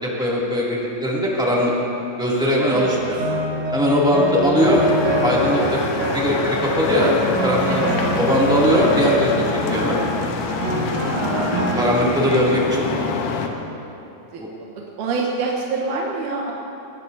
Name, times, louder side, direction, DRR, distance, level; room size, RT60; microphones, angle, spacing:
voice 1, 0.0-1.7 2.2-3.2 3.7-4.8 5.2-5.9 6.1-7.1 7.4-7.9 8.2-9.4 9.7-10.0 11.7-12.9 14.4-14.5, equal, ahead, -6 dB, 1.4 m, -20 dB
sound 1, 2.7-11.9, right 1 dB, 50° right, 2.7 m, -25 dB
sound 2, 4.5-13.5, left 5 dB, 85° left, 3.0 m, -26 dB
voice 2, 10.9-11.6 14.3-14.4 15.0-16.5, right 4 dB, 65° right, -2 dB, 2.2 m, -26 dB
21.5 x 17.5 x 2.7 m, 2.9 s
omnidirectional pair, 4.6 m